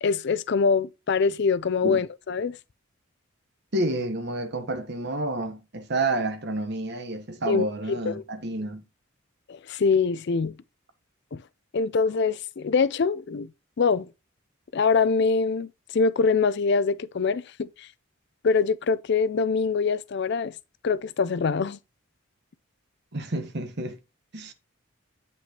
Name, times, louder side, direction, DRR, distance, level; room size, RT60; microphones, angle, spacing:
voice 1, 0.0-2.6 7.5-8.2 9.5-10.6 11.3-11.4 11.7-13.5 13.8-14.1 14.7-17.9 18.4-20.5 20.8-21.8, left 5 dB, 55° left, 0.4 m, -24 dB
voice 2, 3.7-8.8 23.1-24.0 24.3-24.5, right 2 dB, 50° right, 1.1 m, -29 dB
8.4 x 5.3 x 2.9 m
head